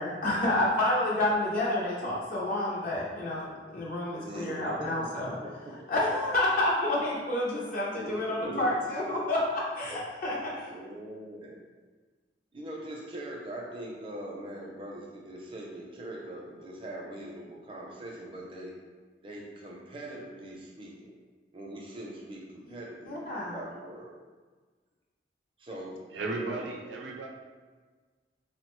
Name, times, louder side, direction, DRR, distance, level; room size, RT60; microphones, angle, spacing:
voice 1, 0.0-3.5 3.7-5.3 5.9-10.7 23.1-23.6, left 1 dB, 45° left, -5 dB, 0.4 m, -29 dB
voice 2, 4.1-5.9 7.9-8.7 10.6-11.6 12.5-18.7 19.2-21.1 21.5-24.1 25.6-26.7, right 1 dB, 30° right, -2 dB, 0.4 m, -42 dB
voice 3, 26.1-27.3, right 2 dB, 80° right, 1 dB, 0.5 m, -35 dB
3.7 x 2.1 x 2.9 m, 1.4 s
head